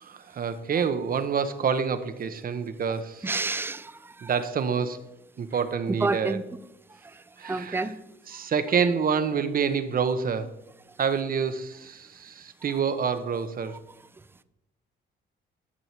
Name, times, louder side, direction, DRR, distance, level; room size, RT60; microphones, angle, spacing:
voice 1, 0.0-3.3 4.2-5.0 5.4-6.4 7.4-7.9 8.3-10.5 11.0-13.8, right 6 dB, 45° right, 11 dB, 0.8 m, -27 dB
voice 2, 3.2-4.3 6.0-6.4 7.4-7.9, right 3 dB, 10° right, 14 dB, 0.5 m, -29 dB
11.0 x 5.3 x 4.5 m, 0.93 s
cardioid pair, 90°, 20 cm